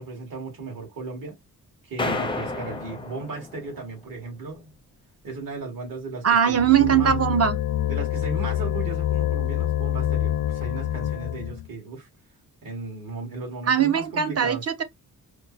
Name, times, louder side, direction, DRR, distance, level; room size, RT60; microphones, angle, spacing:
voice 1, 0.0-1.4 1.8-4.7 5.2-7.1 7.9-12.1 12.6-14.7, right 3 dB, 60° right, 2.2 m, -36 dB
sound 1, 2.0-4.0, left 3 dB, 15° left, 0.5 m, -31 dB
voice 2, 6.2-7.6 13.7-14.8, right 8 dB, 40° right, 0.6 m, -20 dB
sound 2, 6.5-11.7, left 12 dB, 70° left, 0.5 m, -26 dB
5.1 x 2.2 x 2.7 m
wide cardioid pair, 150°, 36 cm